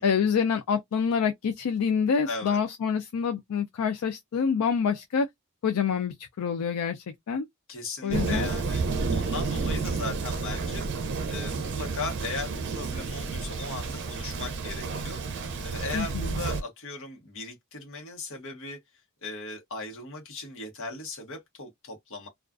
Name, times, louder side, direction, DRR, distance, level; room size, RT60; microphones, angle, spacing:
voice 1, 0.0-5.3 5.6-7.4 8.0-8.5 15.9-16.4, left 6 dB, 80° left, 0.4 m, -27 dB
voice 2, 2.2-2.6 7.7-8.8 9.1-10.9 11.2-15.3 15.6-18.8 19.2-22.3, left 3 dB, 65° left, 1.0 m, -37 dB
Thunder, 8.1-16.6, right 4 dB, 55° right, 0.5 m, -31 dB
2.3 x 2.3 x 2.4 m
head